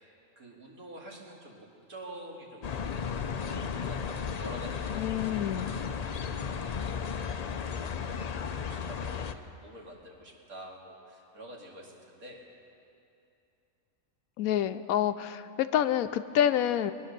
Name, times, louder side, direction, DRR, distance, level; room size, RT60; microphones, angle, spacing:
voice 1, 0.0-12.4, right 1 dB, 80° right, -2 dB, 2.8 m, -48 dB
sound 1, 2.6-9.3, left 6 dB, 70° left, 0.3 m, -34 dB
voice 2, 5.0-5.7 14.4-16.9, left 10 dB, 85° left, 11 dB, 1.0 m, -27 dB
22.0 x 9.7 x 6.7 m, 2.7 s
omnidirectional pair, 1.5 m